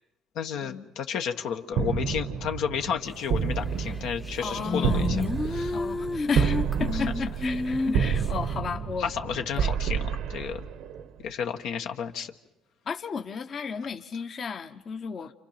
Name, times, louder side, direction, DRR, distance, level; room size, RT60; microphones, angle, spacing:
voice 1, 0.3-5.8 6.9-7.0 9.0-10.7 11.2-12.3, left 7 dB, 80° left, 5 dB, 1.4 m, -32 dB
sound 1, 1.7-11.2, right 7 dB, 75° right, 1.1 m, -29 dB
sound 2, 3.9-4.0 4.3-8.3, left 3 dB, 15° left, 0.9 m, -30 dB
voice 2, 4.4-5.2 5.7-9.8 12.9-15.3, left 5 dB, 50° left, 6 dB, 1.2 m, -34 dB
29.0 x 28.5 x 5.9 m, 0.86 s
supercardioid pair, 75°, 0 cm